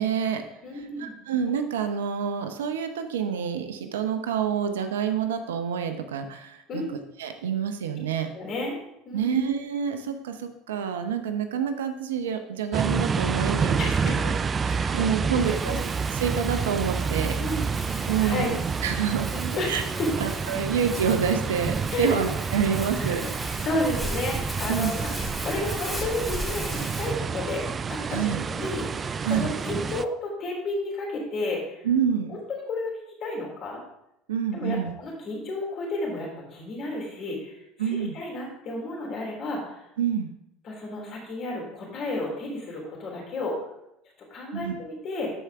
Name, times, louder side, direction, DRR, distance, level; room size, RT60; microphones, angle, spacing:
voice 1, 0.0-0.4 0.7-6.8 7.2-8.3 9.1-14.1 14.6-15.8 16.1-17.4 18.1-19.3 19.7-19.8 20.2-23.3 24.7-24.9 28.1-28.4 29.2-29.5 31.8-32.4 34.3-34.9 37.8-38.2 40.0-40.3 44.5-44.7, right 7 dB, 85° right, 8 dB, 0.8 m, -27 dB
voice 2, 0.6-1.2 6.7-6.9 8.3-8.8 9.1-9.4 13.8-14.3 14.7-15.8 17.4-17.6 18.2-18.5 19.3-20.1 21.9-22.2 23.0-23.3 23.6-25.1 25.4-27.6 27.9-28.2 28.4-31.8 32.3-32.9 33.2-33.8 34.5-39.8 40.7-43.6 44.3-45.3, left 2 dB, 50° left, -1 dB, 3.5 m, -32 dB
sound 1, 12.7-30.0, right 5 dB, 30° right, 0.3 m, -29 dB
Crumpling crinkling, 15.4-27.1, equal, ahead, 2.5 m, -38 dB
12.5 x 4.8 x 3.6 m, 0.83 s
hypercardioid pair, 80°, 0 cm